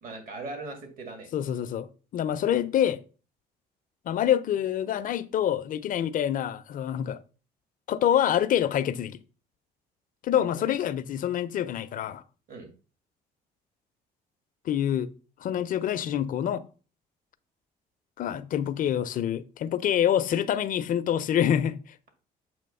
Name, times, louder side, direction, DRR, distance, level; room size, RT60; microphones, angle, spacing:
voice 1, 0.0-1.3 10.5-10.8 12.5-12.7, right 3 dB, 55° right, 2.1 m, -40 dB
voice 2, 1.3-3.0 4.1-7.2 7.9-9.2 10.2-12.2 14.6-15.1 15.4-16.6 18.2-22.0, left 10 dB, 55° left, 0.5 m, -26 dB
7.7 x 3.0 x 5.3 m
cardioid pair, 110°, 17 cm